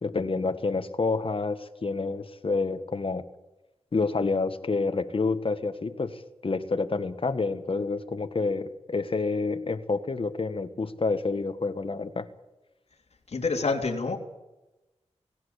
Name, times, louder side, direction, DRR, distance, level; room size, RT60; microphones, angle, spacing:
voice 1, 0.0-3.2 3.9-12.3, left 3 dB, 50° left, 9 dB, 1.6 m, -28 dB
voice 2, 13.3-14.2, left 4 dB, 70° left, 1 dB, 3.1 m, -27 dB
18.0 x 17.0 x 8.3 m, 1.0 s
wide cardioid pair, 80°, 11 cm